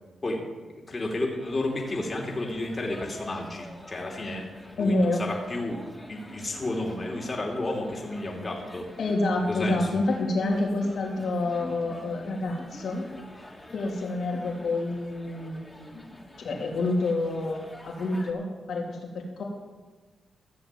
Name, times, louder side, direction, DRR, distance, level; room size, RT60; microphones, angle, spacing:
voice 1, 0.9-5.8 6.1-8.9 9.5-9.9, left 2 dB, 35° left, -1 dB, 2.9 m, -31 dB
sound 1, 1.5-18.3, left 1 dB, 10° left, 2.7 m, -46 dB
voice 2, 4.8-5.2 9.0-13.1 13.7-19.4, left 2 dB, 70° left, -1 dB, 3.4 m, -28 dB
15.0 x 7.1 x 7.5 m, 1.3 s
cardioid pair, 55°, 0 cm